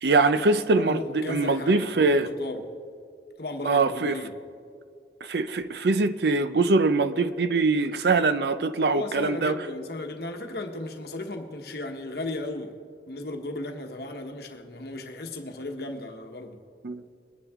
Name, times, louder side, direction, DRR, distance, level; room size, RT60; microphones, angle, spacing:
voice 1, 0.0-2.3 3.7-4.2 5.2-9.7 16.8-17.0, right 3 dB, 65° right, 0.5 m, -23 dB
voice 2, 0.7-2.7 3.4-4.4 8.9-12.7 13.1-16.6, left 2 dB, 60° left, 1.2 m, -35 dB
21.5 x 10.0 x 3.6 m
head